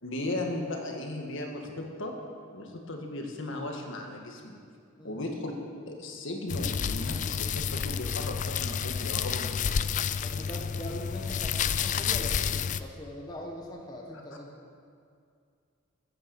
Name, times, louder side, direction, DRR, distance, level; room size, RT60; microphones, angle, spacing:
voice 1, 0.0-2.1 2.5-4.6 5.0-5.5 5.9-9.8, left 1 dB, 60° left, 2 dB, 1.7 m, -36 dB
sound 1, 6.5-12.8, left 7 dB, 35° left, 0.3 m, -30 dB
voice 2, 10.2-14.6, left 1 dB, 20° left, -1 dB, 1.2 m, -41 dB
14.5 x 8.9 x 7.0 m, 2.3 s
head